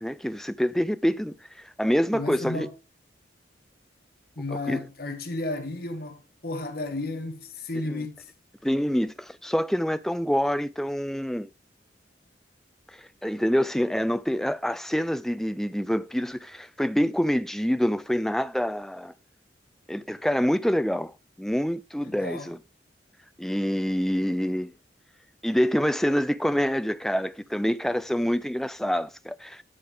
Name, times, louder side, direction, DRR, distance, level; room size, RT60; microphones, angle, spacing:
voice 1, 0.0-2.7 4.7-4.8 7.9-8.0 8.6-11.5 13.2-19.1 19.9-22.6 23.4-24.7 25.4-29.6, equal, ahead, 0.4 m, -26 dB
voice 2, 2.1-2.7 4.4-8.3 22.0-22.5, left 2 dB, 55° left, 1.4 m, -33 dB
12.0 x 5.1 x 3.5 m
head